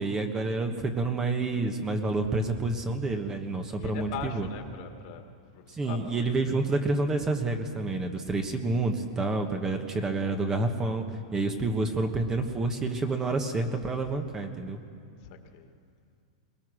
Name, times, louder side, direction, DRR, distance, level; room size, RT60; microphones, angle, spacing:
voice 1, 0.0-4.5 5.8-11.0 11.3-14.8, right 3 dB, 15° right, 5 dB, 1.4 m, -28 dB
voice 2, 3.7-5.2 5.5-6.5 11.4-11.7 15.2-15.7, left 8 dB, 50° left, 5 dB, 2.0 m, -42 dB
23.0 x 19.5 x 6.4 m, 2.5 s
hypercardioid pair, 135°, 4 cm